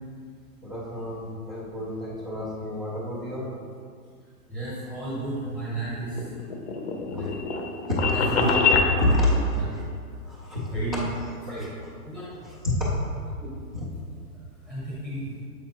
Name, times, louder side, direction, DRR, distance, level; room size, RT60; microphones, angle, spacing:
voice 1, 0.6-3.6 7.1-7.3 7.8-8.6 9.0-11.1 11.5-11.9 12.2-13.1 13.7-13.9, left 1 dB, 25° right, -9 dB, 0.4 m, -29 dB
voice 2, 4.5-6.2 7.1-7.3 8.1-8.5 9.5-9.6 10.7-11.0 11.5-11.6 12.0-12.3 13.4-13.5 14.6-15.3, right 2 dB, ahead, -9 dB, 0.9 m, -32 dB
sound 1, 5.8-8.9, left 4 dB, 45° left, 0.6 m, -25 dB
7.2 x 4.9 x 2.8 m, 2.2 s
hypercardioid pair, 165°, 47 cm